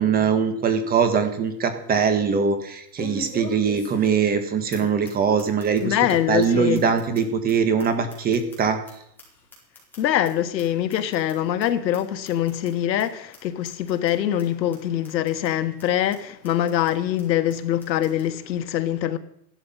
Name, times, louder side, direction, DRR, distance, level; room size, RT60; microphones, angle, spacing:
voice 1, 0.0-6.0 6.3-8.8, right 6 dB, 20° right, 1.5 m, -22 dB
sound 1, 0.6-0.7 1.2-1.3 3.0-4.4 4.7-4.8 5.0-5.1 5.4-5.8 6.1-6.2 6.4-6.5 6.7-8.9 9.2-10.3 10.6-10.7 10.9-11.3 11.6-11.7 11.9-12.0 12.2-12.7 13.0-13.1 13.3-13.4 13.6-14.1 14.4-14.5 14.7-14.8 15.0-15.5 15.8-15.9 16.1-16.2 16.4-16.9 17.2-17.3 17.5-17.6 17.8-18.2, left 3 dB, 5° left, 4.7 m, -41 dB
voice 2, 5.8-6.8 10.0-19.2, left 11 dB, 85° left, 1.4 m, -24 dB
15.5 x 12.0 x 5.6 m
supercardioid pair, 150°, 50 cm